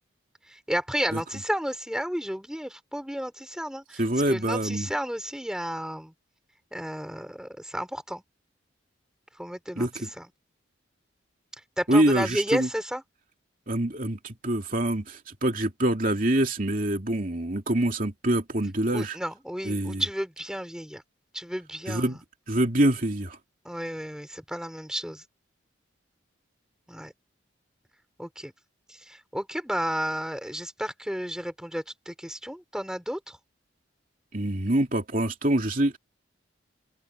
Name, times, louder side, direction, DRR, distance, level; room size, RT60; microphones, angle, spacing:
voice 1, 0.5-4.0 4.3-6.1 6.7-8.2 9.4-10.3 11.8-13.0 18.9-21.0 21.3-22.1 23.6-25.2 26.9-27.1 28.2-28.5 28.9-33.4, equal, 5° right, 4.6 m, -32 dB
voice 2, 4.0-4.9 9.8-10.1 11.9-12.7 13.7-19.2 19.6-20.0 21.9-22.2 22.5-23.4 34.3-36.0, right 1 dB, 45° right, 2.7 m, -25 dB
head